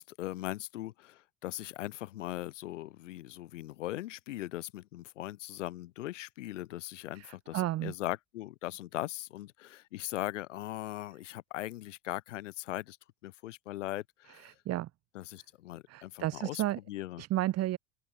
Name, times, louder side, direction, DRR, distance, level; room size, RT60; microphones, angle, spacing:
voice 1, 0.0-13.0 13.2-14.5 15.1-16.6 16.9-17.2, left 15 dB, 60° left, 1.2 m, -39 dB
voice 2, 7.1-7.9 14.3-14.9 15.9-16.8 17.2-17.8, right 14 dB, 35° right, 2.8 m, -33 dB
open air
figure-of-eight pair, 75°, 41 cm